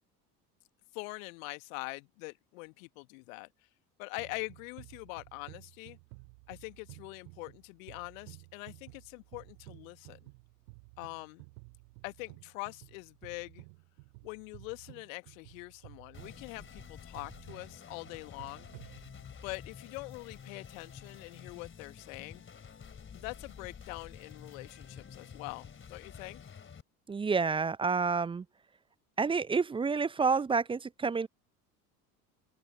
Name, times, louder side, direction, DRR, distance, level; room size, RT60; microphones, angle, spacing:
voice 1, 0.9-3.5 4.0-6.0 6.5-10.3 11.0-11.4 12.0-13.6 14.2-18.9 19.4-22.4 23.1-26.4, left 28 dB, 55° left, 1.9 m, -44 dB
sound 1, 4.2-19.5, right 32 dB, 55° right, 6.2 m, -54 dB
sound 2, 16.1-26.8, left 6 dB, 25° left, 3.9 m, -50 dB
voice 2, 27.1-28.4 29.2-31.3, right 5 dB, 10° right, 0.6 m, -29 dB
open air
figure-of-eight pair, 65°, 47 cm